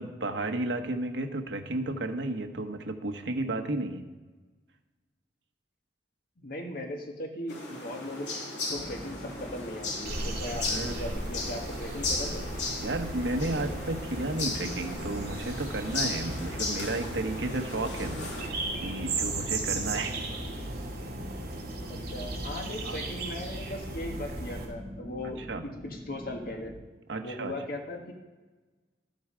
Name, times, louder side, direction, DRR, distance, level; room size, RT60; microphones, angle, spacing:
voice 1, 0.0-4.0 10.7-11.1 12.8-18.3 18.8-20.2 22.8-23.0 25.5-25.7 27.1-27.5, right 2 dB, 85° right, 6 dB, 1.1 m, -33 dB
voice 2, 6.4-8.3 8.7-12.4 21.9-26.7 27.2-28.1, left 1 dB, 55° left, 3 dB, 1.4 m, -38 dB
sound 1, 7.5-18.5, left 3 dB, 75° left, 3.0 m, -36 dB
sound 2, 8.7-26.7, equal, ahead, 2.7 m, -45 dB
sound 3, 10.0-24.7, right 2 dB, 60° right, 2.8 m, -36 dB
13.0 x 7.9 x 5.0 m, 1.3 s
head